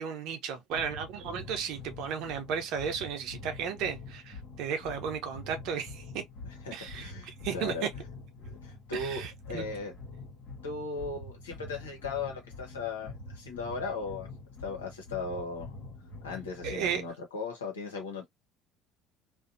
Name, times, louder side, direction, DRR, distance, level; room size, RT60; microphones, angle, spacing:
voice 1, 0.0-6.2 6.7-7.9 8.9-9.7 16.6-17.0, right 7 dB, 65° right, 0.7 m, -34 dB
sound 1, 0.7-17.1, left 3 dB, 65° left, 1.1 m, -46 dB
voice 2, 6.6-7.9 8.4-9.9 10.6-14.3 14.6-15.7 16.2-18.2, left 3 dB, 85° left, 0.9 m, -37 dB
2.6 x 2.3 x 2.5 m
hypercardioid pair, 65°, 0 cm